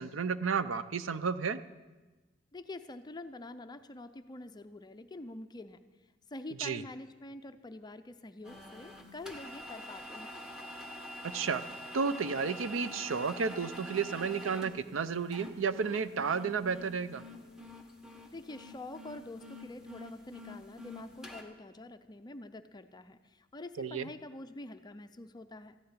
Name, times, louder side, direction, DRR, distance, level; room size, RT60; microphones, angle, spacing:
voice 1, 0.0-1.6 6.6-6.8 11.2-11.6 11.9-17.2 23.8-24.1, right 5 dB, 90° right, 13 dB, 0.6 m, -32 dB
voice 2, 2.5-5.8 6.3-10.3 18.3-25.8, left 2 dB, 20° left, 9 dB, 0.5 m, -46 dB
sound 1, 8.4-21.4, left 1 dB, 5° right, 1.3 m, -46 dB
Telephone, 15.1-15.6 16.1-16.6 17.1-17.7 18.1-18.5 19.5-19.7, left 4 dB, 50° right, 2.6 m, -60 dB
14.0 x 6.8 x 9.5 m, 1.2 s
head